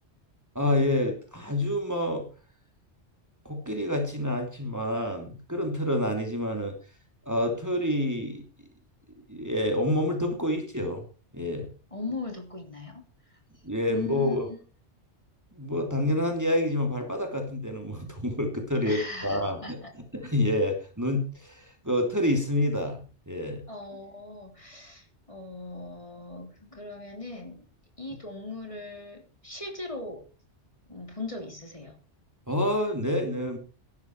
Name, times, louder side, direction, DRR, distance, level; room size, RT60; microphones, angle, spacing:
voice 1, 0.5-2.3 3.4-6.8 7.3-8.4 9.3-11.0 11.3-11.7 13.6-14.5 15.6-19.8 20.1-23.0 23.3-23.6 32.5-33.6, left 1 dB, 15° right, 3 dB, 3.1 m, -28 dB
voice 2, 11.9-13.0 13.3-13.4 13.9-14.6 18.9-19.9 23.7-27.7 28.0-30.2 30.9-31.9, left 3 dB, 30° left, 2 dB, 3.5 m, -39 dB
17.0 x 12.5 x 4.7 m, 0.35 s
omnidirectional pair, 1.2 m